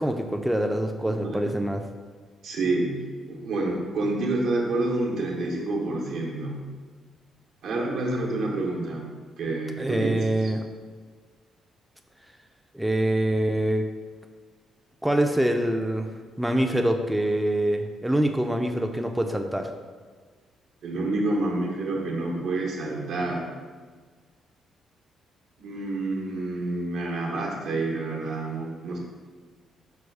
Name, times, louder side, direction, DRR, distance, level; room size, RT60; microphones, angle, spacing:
voice 1, 0.0-1.8 9.8-10.6 12.7-13.9 15.0-16.1 16.4-19.7, right 1 dB, 5° right, 4 dB, 0.4 m, -25 dB
voice 2, 2.4-3.0 3.3-6.7 7.6-9.1 9.4-10.5 20.8-23.5 25.6-29.0, right 2 dB, 75° right, -2 dB, 0.9 m, -28 dB
4.7 x 2.3 x 4.7 m, 1.5 s
cardioid pair, 90°, 0 cm